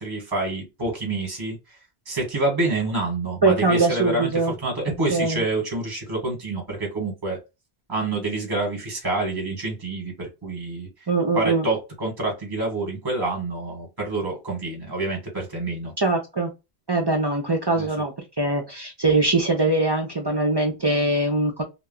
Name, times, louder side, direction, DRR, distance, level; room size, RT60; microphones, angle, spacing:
voice 1, 0.0-1.6 2.1-7.4 7.9-10.9 11.3-15.9 17.7-17.9, right 2 dB, 25° right, 1.0 m, -27 dB
voice 2, 3.4-4.5 5.1-5.4 11.1-11.6 16.0-16.5 16.9-21.6, right 2 dB, 40° right, 0.4 m, -22 dB
2.2 x 2.1 x 3.6 m
omnidirectional pair, 1.0 m